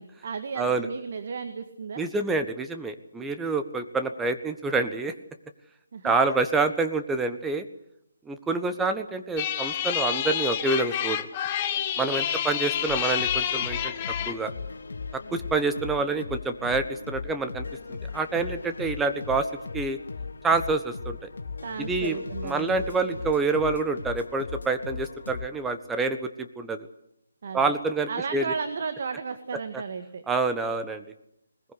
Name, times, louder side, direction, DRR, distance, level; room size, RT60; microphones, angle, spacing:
voice 1, 0.0-2.0 5.9-6.3 12.1-12.5 21.6-22.8 27.4-27.8 28.1-30.2, right 5 dB, 50° right, 8 dB, 2.0 m, -34 dB
voice 2, 0.6-0.9 2.0-5.1 6.0-7.6 8.3-11.3 12.0-13.9 14.3-14.5 15.1-19.5 19.7-20.0 20.4-21.2 21.9-26.9 27.5-28.5 30.3-31.0, right 3 dB, 5° right, 7 dB, 1.4 m, -27 dB
sound 1, 9.4-14.4, left 10 dB, 30° left, 1.4 m, -28 dB
sound 2, 12.9-25.5, left 4 dB, 65° left, 2.6 m, -38 dB
20.5 x 20.5 x 8.3 m, 0.77 s
figure-of-eight pair, 150°, 0 cm